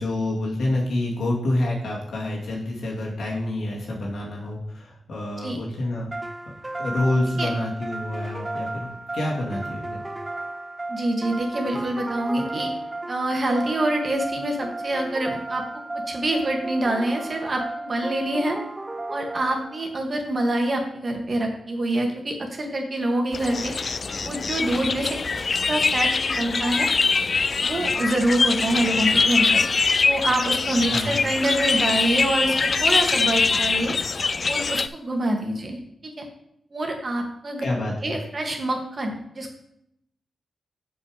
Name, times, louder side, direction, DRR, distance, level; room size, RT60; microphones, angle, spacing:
voice 1, 0.0-6.1 6.5-8.9 9.1-10.0 30.9-31.2 37.6-38.2, left 1 dB, 80° left, -3 dB, 2.3 m, -27 dB
sound 1, 6.1-20.0, right 2 dB, 25° right, 0.5 m, -34 dB
voice 2, 10.9-12.7 13.1-15.6 15.9-18.6 19.1-23.7 24.2-26.9 27.6-29.6 30.0-33.9 34.5-36.3 36.7-37.6 38.0-39.6, right 1 dB, 45° right, 2 dB, 1.9 m, -26 dB
sound 2, 23.3-34.9, left 4 dB, 50° left, 0.3 m, -23 dB
6.8 x 5.5 x 5.1 m, 0.76 s
cardioid pair, 55°, 0 cm